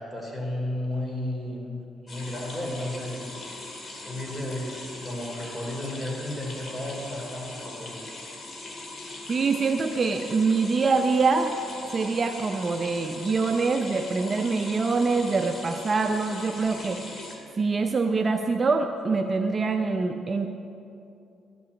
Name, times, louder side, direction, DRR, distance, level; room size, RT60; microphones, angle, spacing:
voice 1, 0.0-3.3 4.0-8.1, left 1 dB, 15° left, -1 dB, 3.2 m, -33 dB
sound 1, 2.1-17.3, left 2 dB, 45° left, 2.2 m, -40 dB
voice 2, 9.3-11.5 11.9-17.0 17.5-20.5, right 4 dB, 35° right, 5 dB, 0.6 m, -24 dB
12.0 x 6.1 x 8.3 m, 2.7 s
cardioid pair, 90°, 0 cm